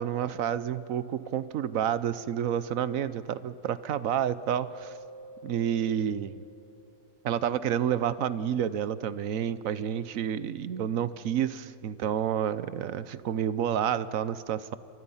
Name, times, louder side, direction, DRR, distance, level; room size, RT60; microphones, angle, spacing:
voice 1, 0.0-4.9 5.4-6.4 7.2-14.8, right 9 dB, 60° right, 15 dB, 1.0 m, -29 dB
Keyboard (musical), 4.5-7.2, right 1 dB, 90° right, 8.3 m, -49 dB
29.0 x 25.5 x 5.6 m, 2.7 s
omnidirectional pair, 1.9 m